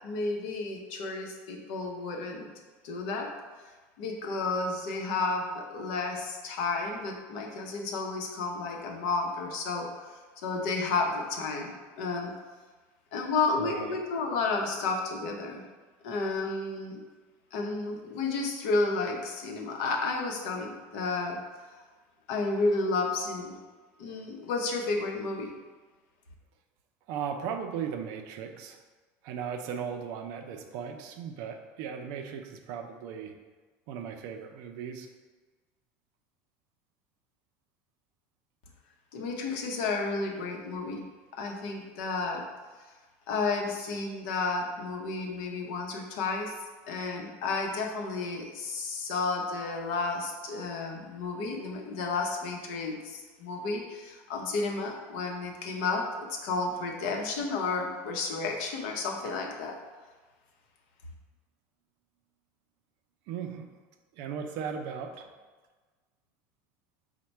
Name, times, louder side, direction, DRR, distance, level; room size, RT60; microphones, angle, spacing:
voice 1, 0.0-2.5 2.8-3.3 4.0-9.9 10.4-12.4 13.1-15.6 16.0-17.0 17.5-21.4 22.3-23.6 24.0-25.5 39.1-42.4 43.3-46.5 46.9-59.7, left 3 dB, 75° left, 2 dB, 0.7 m, -32 dB
voice 2, 13.6-14.0 27.1-28.8 29.2-33.3 33.9-35.1 59.2-59.3 63.3-63.7 64.1-65.3, right 7 dB, 60° right, 5 dB, 0.4 m, -37 dB
4.1 x 2.1 x 4.4 m, 1.3 s
cardioid pair, 155°, 6 cm